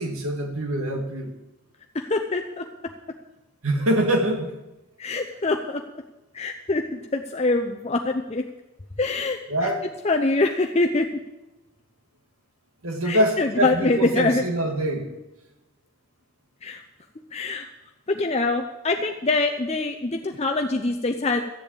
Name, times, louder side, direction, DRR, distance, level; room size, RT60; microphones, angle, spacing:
voice 1, 0.0-1.3 3.6-4.5 9.5-9.9 12.8-15.1, right 1 dB, 85° right, 3 dB, 2.1 m, -24 dB
voice 2, 1.9-2.6 5.0-5.8 6.3-8.4 9.0-9.7 10.0-11.1 13.0-14.4 16.6-16.8 17.3-17.7 18.1-21.4, left 3 dB, 30° left, 4 dB, 0.6 m, -24 dB
14.0 x 7.7 x 8.6 m, 1.0 s
head